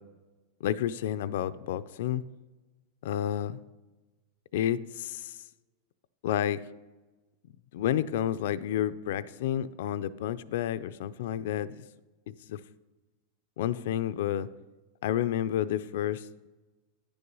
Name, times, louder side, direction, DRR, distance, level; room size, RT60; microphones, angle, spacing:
voice 1, 0.6-2.2 3.0-3.6 4.5-5.4 6.2-6.6 7.7-11.9 12.3-12.6 13.6-14.5 15.0-16.3, left 11 dB, 75° left, 15 dB, 0.4 m, -30 dB
10.0 x 7.0 x 5.4 m, 1.2 s
supercardioid pair, 145°, 0 cm